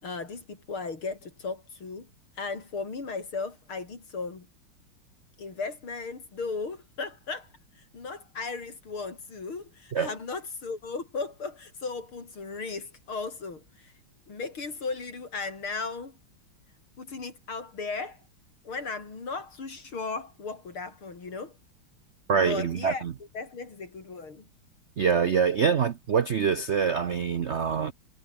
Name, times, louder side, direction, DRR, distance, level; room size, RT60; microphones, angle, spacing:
voice 1, 0.0-2.1 2.4-4.5 5.4-7.5 7.9-13.9 14.3-16.2 17.0-18.2 18.6-21.5 22.4-23.0 23.3-24.5, left 4 dB, 85° left, 5.2 m, -36 dB
voice 2, 22.3-23.1 25.0-27.9, right 6 dB, 65° right, 0.6 m, -25 dB
omnidirectional pair, 2.3 m